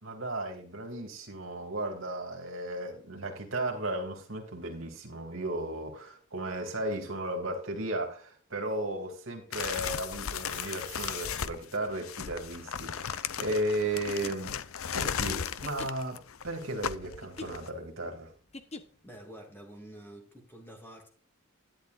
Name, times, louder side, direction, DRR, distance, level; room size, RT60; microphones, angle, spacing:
voice 1, 0.0-14.6 14.9-18.3, right 1 dB, 65° right, 2.8 m, -35 dB
sound 1, 9.5-17.7, left 8 dB, 80° left, 0.6 m, -36 dB
sound 2, 10.1-11.7, right 13 dB, 85° right, 2.1 m, -50 dB
sound 3, 14.1-19.2, left 2 dB, 30° left, 1.0 m, -47 dB
voice 2, 19.0-21.1, right 1 dB, 10° left, 2.7 m, -48 dB
12.0 x 10.5 x 2.6 m
head